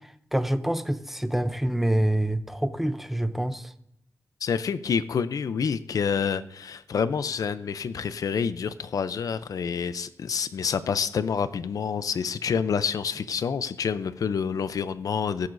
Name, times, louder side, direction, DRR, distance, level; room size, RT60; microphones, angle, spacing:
voice 1, 0.3-3.6, right 1 dB, 5° right, 0.5 m, -26 dB
voice 2, 4.4-15.5, left 6 dB, 85° left, 0.5 m, -28 dB
16.5 x 9.3 x 2.6 m
wide cardioid pair, 155°, 6 cm